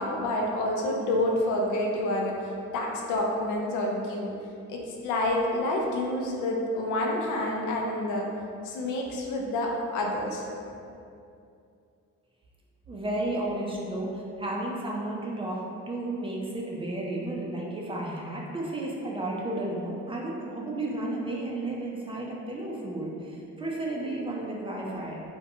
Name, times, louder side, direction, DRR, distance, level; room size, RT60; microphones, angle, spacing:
voice 1, 0.0-2.5 2.7-4.3 4.7-8.3 8.6-10.4, left 1 dB, 80° left, -1 dB, 0.5 m, -28 dB
voice 2, 12.9-25.2, right 1 dB, 20° right, -3 dB, 0.4 m, -33 dB
2.7 x 2.1 x 2.7 m, 2.5 s
cardioid pair, 90°, 30 cm